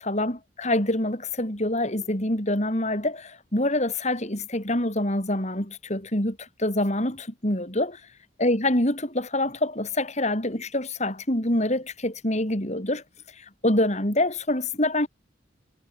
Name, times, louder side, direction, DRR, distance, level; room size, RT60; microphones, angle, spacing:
voice 1, 0.0-8.0 8.4-13.0 13.4-15.1, left 1 dB, 40° left, 5.6 m, -26 dB
head